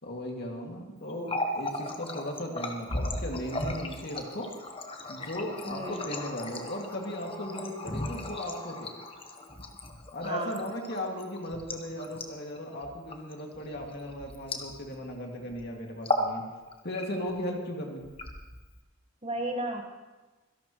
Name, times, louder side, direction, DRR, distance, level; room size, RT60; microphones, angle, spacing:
voice 1, 0.0-4.5 5.1-8.9 10.1-16.4 16.8-18.0, equal, 50° left, 1 dB, 2.3 m, -37 dB
Water tap faucet, 1.1-15.1 15.4-15.6 15.9-16.4 16.7-17.4 18.0-18.8, left 2 dB, 25° left, 1.1 m, -36 dB
voice 2, 5.6-6.0 10.2-10.7 19.2-19.8, right 1 dB, 30° right, 3 dB, 1.5 m, -34 dB
25.0 x 11.5 x 3.1 m, 1.2 s
head